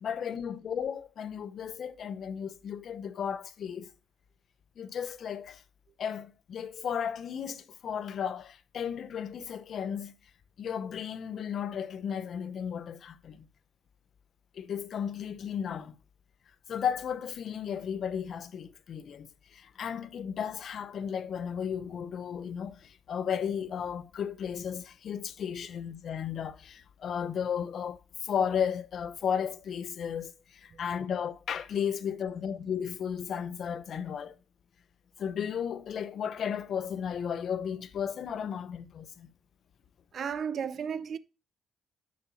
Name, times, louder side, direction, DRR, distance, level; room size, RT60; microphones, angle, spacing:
voice 1, 0.0-3.9 4.8-5.6 6.0-10.1 10.6-13.5 14.5-15.9 16.7-34.4 35.2-39.3, left 8 dB, 60° left, 0.7 m, -34 dB
voice 2, 40.1-41.2, right 7 dB, 55° right, 0.5 m, -33 dB
7.0 x 6.4 x 4.1 m
cardioid pair, 90°, 0 cm